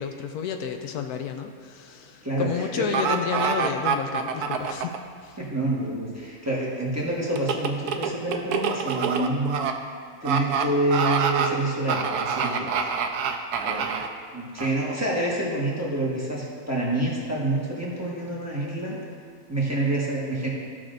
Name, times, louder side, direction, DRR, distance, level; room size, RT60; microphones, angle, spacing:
voice 1, 0.0-4.9 5.2-5.4, left 7 dB, 80° left, 5 dB, 1.1 m, -31 dB
voice 2, 2.2-2.9 5.4-9.6 10.2-12.9 13.6-13.9 14.3-19.0 19.5-20.5, right 2 dB, 10° right, -5 dB, 1.3 m, -27 dB
sound 1, 2.9-5.0 7.4-9.7 10.2-10.6 10.9-11.5 11.9-14.1 14.6-14.7, right 6 dB, 85° right, 1.1 m, -26 dB
15.0 x 6.1 x 2.6 m, 2.2 s
omnidirectional pair, 1.6 m